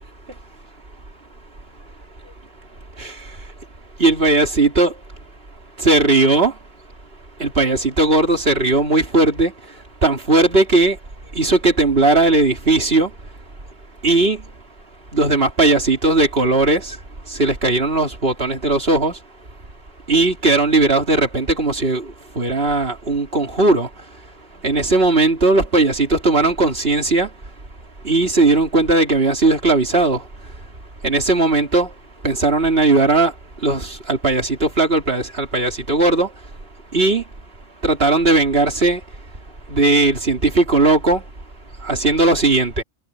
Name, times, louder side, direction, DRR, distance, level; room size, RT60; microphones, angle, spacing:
voice 1, 4.0-4.9 5.8-6.5 7.4-9.5 10.0-11.0 11.4-13.1 14.0-14.4 15.1-17.0 17.4-19.1 20.1-22.0 22.4-23.9 24.6-27.3 28.0-30.2 31.0-31.9 32.2-33.3 33.6-36.3 36.9-37.2 37.8-39.0 39.7-41.2 41.8-42.8, right 2 dB, 55° right, 3.5 m, -17 dB
omnidirectional pair, 1.2 m